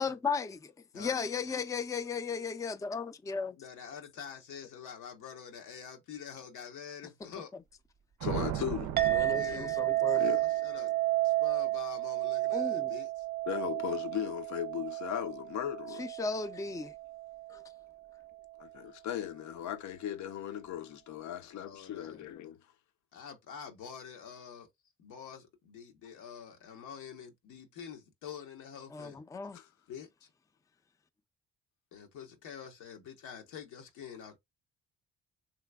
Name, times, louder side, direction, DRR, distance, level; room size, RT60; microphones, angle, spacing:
voice 1, 0.0-3.6 9.1-10.2 12.5-12.9 16.0-16.9 17.5-17.6 28.9-29.6, left 5 dB, 10° left, 0.4 m, -35 dB
voice 2, 3.6-7.5 9.3-9.8 10.1-10.9 11.2-13.3 21.4-22.3 23.1-24.7 25.0-29.2 29.9-30.3 31.9-34.4, left 7 dB, 90° left, 1.1 m, -47 dB
voice 3, 8.2-8.9 10.2-10.6 13.5-16.0 18.6-22.6 29.5-29.7, left 10 dB, 70° left, 0.7 m, -37 dB
sound 1, 8.2-10.5, right 11 dB, 80° right, 0.5 m, -37 dB
Chink clink, 9.0-17.7, right 15 dB, 35° right, 0.7 m, -32 dB
3.3 x 2.8 x 2.2 m
cardioid pair, 90°, 30 cm